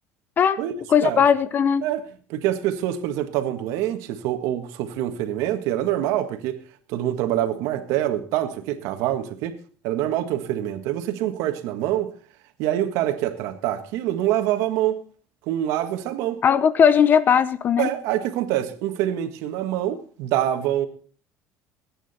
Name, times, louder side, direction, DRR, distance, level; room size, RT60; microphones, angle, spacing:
voice 1, 0.9-1.9 16.4-17.9, left 7 dB, 40° left, 0.7 m, -18 dB
voice 2, 2.3-6.6 6.9-9.6 9.8-12.1 12.6-15.0 15.5-16.4 17.8-20.9, right 12 dB, 80° right, 1.7 m, -25 dB
21.5 x 9.0 x 4.3 m
cardioid pair, 120°, 5 cm